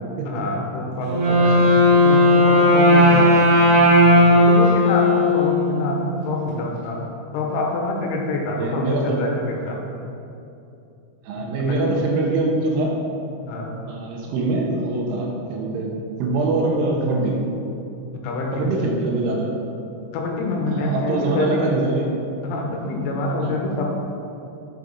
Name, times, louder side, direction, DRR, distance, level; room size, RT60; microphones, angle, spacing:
voice 1, 0.3-1.6 1.9-3.3 3.9-7.0 7.3-9.8 11.4-12.0 13.4-13.8 18.2-18.7 20.1-21.6 22.4-23.9, left 2 dB, 85° left, 0 dB, 3.2 m, -26 dB
Wind instrument woodwind instrument, 1.0-5.9, left 1 dB, 55° right, 2.4 m, -15 dB
voice 2, 1.3-1.7 3.1-3.3 8.5-9.2 11.2-13.0 13.9-17.5 18.5-19.5 20.7-22.1 23.4-23.5, right 2 dB, 85° right, 0 dB, 3.1 m, -24 dB
7.6 x 4.9 x 4.0 m, 2.7 s
omnidirectional pair, 5.8 m